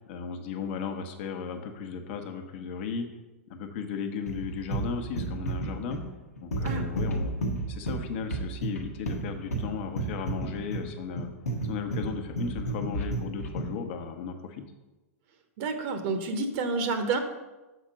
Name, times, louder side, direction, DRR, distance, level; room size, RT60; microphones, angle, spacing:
voice 1, 0.0-3.1 3.5-6.0 6.4-7.3 7.7-11.3 11.6-14.6, left 6 dB, 55° left, 6 dB, 0.9 m, -35 dB
sound 1, 4.3-13.8, right 2 dB, 85° left, 1.1 m, -32 dB
voice 2, 15.6-17.2, right 4 dB, 45° right, 7 dB, 0.8 m, -29 dB
6.3 x 4.4 x 5.2 m, 1.1 s
hypercardioid pair, 110°, 8 cm